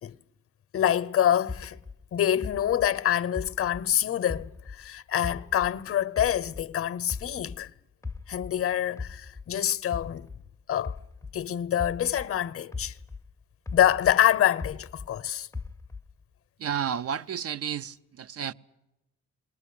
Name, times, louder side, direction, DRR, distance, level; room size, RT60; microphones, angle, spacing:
voice 1, 0.7-1.8 2.1-7.7 8.3-10.3 10.7-11.0 11.3-13.0 13.7-15.5, left 11 dB, 50° left, 0.8 m, -26 dB
sound 1, 1.5-4.9 5.2-7.7 8.0-12.4 12.7-15.2 15.5-16.2, left 4 dB, 10° left, 0.7 m, -39 dB
voice 2, 16.6-18.5, right 8 dB, 50° right, 0.7 m, -31 dB
21.0 x 19.0 x 8.6 m
cardioid pair, 90°, 30 cm